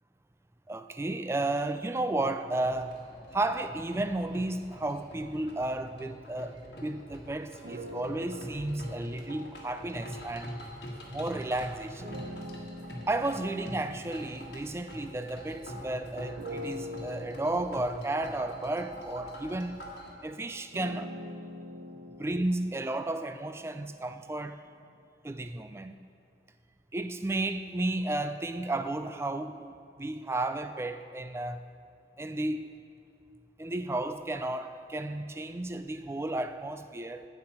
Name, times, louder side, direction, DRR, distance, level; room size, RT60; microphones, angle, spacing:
voice 1, 0.7-3.0 3.3-10.6 11.1-12.1 13.1-19.8 20.2-21.1 22.2-24.6 25.2-26.0 26.9-31.7 32.2-32.8 33.6-37.3, right 2 dB, 15° right, 0.3 m, -33 dB
sound 1, 2.6-20.1, equal, 60° left, 1.6 m, -45 dB
sound 2, 7.6-11.2 12.0-15.8 16.4-24.3, left 1 dB, 50° right, 0.6 m, -45 dB
16.5 x 5.7 x 4.4 m
head